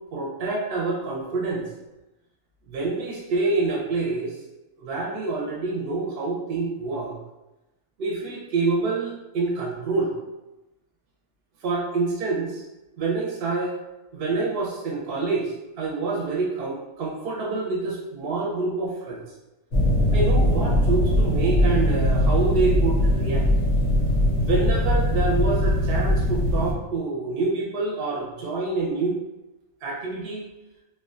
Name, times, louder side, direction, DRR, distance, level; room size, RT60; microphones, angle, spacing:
voice 1, 0.1-1.6 2.7-4.3 4.8-7.2 8.0-10.1 11.6-12.6 13.0-13.8 14.1-19.2 20.1-23.5 24.3-29.2 29.8-30.4, right 3 dB, 65° right, -3 dB, 0.7 m, -27 dB
sound 1, 19.7-26.7, left 1 dB, 90° left, 0.9 m, -21 dB
2.4 x 2.2 x 2.4 m, 0.99 s
omnidirectional pair, 1.1 m